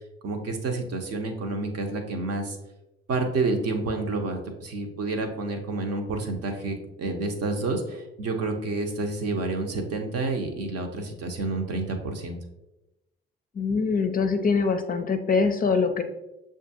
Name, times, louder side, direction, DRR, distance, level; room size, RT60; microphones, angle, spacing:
voice 1, 0.2-2.6 3.1-12.4, right 3 dB, 55° right, 3 dB, 0.9 m, -29 dB
voice 2, 13.6-16.0, left 4 dB, 30° left, 7 dB, 0.5 m, -23 dB
6.6 x 2.5 x 2.7 m, 0.95 s
hypercardioid pair, 50°, 30 cm